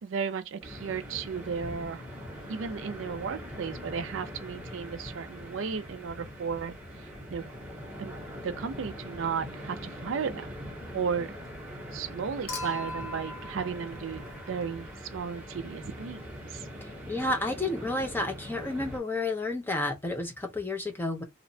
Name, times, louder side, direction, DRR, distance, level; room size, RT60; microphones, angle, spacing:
voice 1, 0.0-2.1 2.5-6.7 7.3-7.4 8.0-8.2 8.4-10.5 10.9-11.3 11.9-14.9 15.1-16.7, right 6 dB, 70° right, 0.4 m, -34 dB
sound 1, 0.6-19.0, equal, 5° right, 0.8 m, -42 dB
Human group actions / Chink clink / Liquid, 12.5-14.9 16.4-16.5, left 2 dB, 75° left, 0.8 m, -40 dB
voice 2, 16.8-21.2, left 2 dB, 10° left, 0.4 m, -31 dB
2.7 x 2.1 x 2.6 m
head